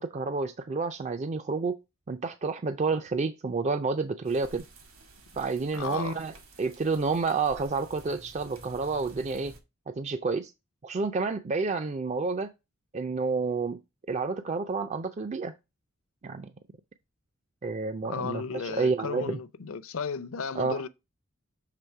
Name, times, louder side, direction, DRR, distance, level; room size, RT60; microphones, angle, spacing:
voice 1, 0.0-1.8 2.1-4.6 5.4-9.5 9.9-10.5 10.8-12.5 12.9-13.8 14.1-15.5 16.2-16.5 17.6-19.4 20.5-20.8, right 4 dB, 30° right, 0.4 m, -29 dB
sound 1, 4.2-9.6, right 2 dB, 70° right, 1.8 m, -51 dB
voice 2, 5.7-6.2 18.1-20.9, left 5 dB, 65° left, 0.5 m, -34 dB
6.8 x 3.5 x 4.5 m
head